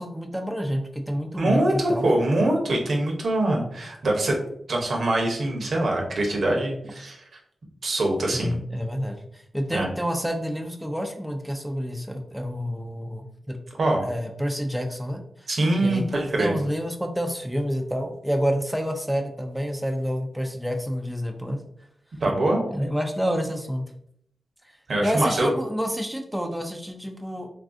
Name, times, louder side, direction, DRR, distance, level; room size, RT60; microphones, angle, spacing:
voice 1, 0.0-2.0 8.3-13.6 14.0-15.5 15.7-21.6 22.7-23.9 24.6-24.8 25.0-27.5, equal, ahead, 2 dB, 0.4 m, -28 dB
voice 2, 1.4-4.4 4.7-7.2 7.8-8.6 9.7-9.9 13.8-14.0 15.5-16.6 22.2-22.6 24.9-25.5, right 1 dB, 70° right, 0 dB, 0.7 m, -23 dB
3.2 x 2.4 x 2.5 m, 0.71 s
cardioid pair, 60°, 0 cm